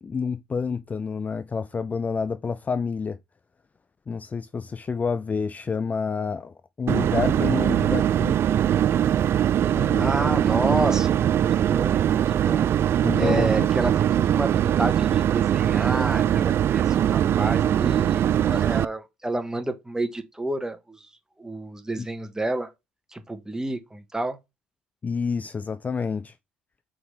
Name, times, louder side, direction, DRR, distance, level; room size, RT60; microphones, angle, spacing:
voice 1, 0.0-3.2 4.1-8.4 9.7-10.1 13.0-13.7 22.0-22.1 25.0-26.3, left 5 dB, 25° left, 0.4 m, -28 dB
sound 1, 6.9-18.9, right 10 dB, 45° right, 0.3 m, -21 dB
voice 2, 9.8-12.7 13.2-21.0 21.4-22.7 23.1-24.4, right 2 dB, 10° right, 1.4 m, -30 dB
7.8 x 4.0 x 3.3 m
hypercardioid pair, 55°, 6 cm